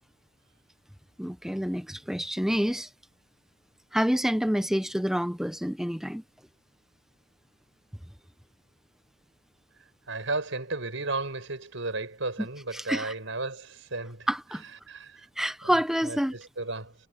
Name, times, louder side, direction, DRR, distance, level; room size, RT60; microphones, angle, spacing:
voice 1, 1.2-2.9 3.9-6.2 12.7-13.1 14.3-14.6 15.4-16.3, equal, ahead, 0.7 m, -28 dB
voice 2, 10.1-14.3 14.9-15.2 16.0-16.9, right 3 dB, 70° right, 5.0 m, -34 dB
head